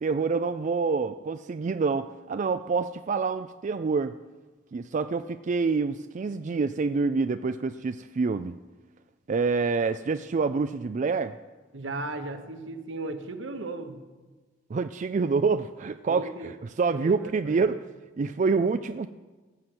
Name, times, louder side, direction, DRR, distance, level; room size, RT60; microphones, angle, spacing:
voice 1, 0.0-4.2 4.7-8.5 9.3-11.3 14.7-17.9 18.2-19.1, right 4 dB, 40° right, 10 dB, 0.4 m, -27 dB
voice 2, 11.7-14.0 16.1-16.5 16.9-17.6, right 2 dB, 75° right, 7 dB, 1.1 m, -36 dB
17.5 x 5.9 x 7.9 m, 1.3 s
head